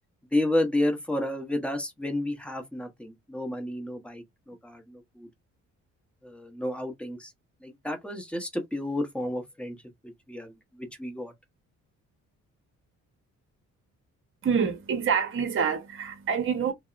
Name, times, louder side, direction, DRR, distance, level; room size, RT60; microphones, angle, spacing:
voice 1, 0.3-5.3 6.2-7.3 7.6-9.8 10.3-11.3, left 1 dB, 5° left, 0.8 m, -31 dB
voice 2, 14.4-16.7, right 6 dB, 45° right, 0.8 m, -26 dB
2.7 x 2.0 x 2.3 m
cardioid pair, 90°, 30 cm